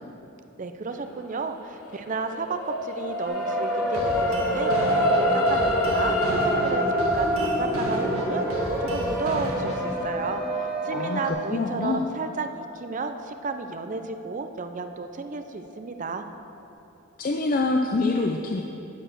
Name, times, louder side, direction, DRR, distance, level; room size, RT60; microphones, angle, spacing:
voice 1, 0.6-16.3, right 4 dB, 35° right, 8 dB, 0.4 m, -33 dB
sound 1, 1.9-14.4 14.9-15.0, equal, 75° left, 1.0 m, -28 dB
sound 2, 3.2-11.3, right 1 dB, 5° left, 2.1 m, -30 dB
sound 3, 3.9-10.0, equal, 75° right, 1.7 m, -34 dB
voice 2, 10.9-12.1 17.2-18.6, left 3 dB, 40° left, 2 dB, 0.4 m, -25 dB
12.0 x 4.7 x 6.4 m, 2.8 s
head